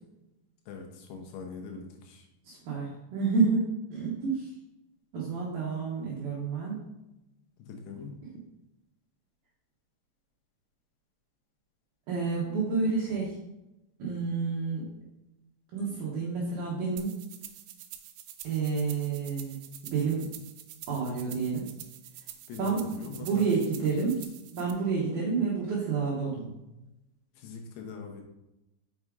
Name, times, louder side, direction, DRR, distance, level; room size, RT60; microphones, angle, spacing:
voice 1, 0.7-2.3 7.6-8.1 22.5-23.5 27.4-28.2, left 5 dB, 80° left, 2 dB, 2.4 m, -42 dB
voice 2, 2.5-4.5 5.1-6.8 12.1-13.4 14.0-14.8 15.7-17.2 18.4-20.3 20.9-21.6 22.6-24.2 24.5-26.5, right 4 dB, 75° right, -5 dB, 2.3 m, -29 dB
sound 1, 17.0-24.7, right 11 dB, 90° right, 3.4 m, -47 dB
6.3 x 6.1 x 3.6 m, 0.94 s
omnidirectional pair, 5.9 m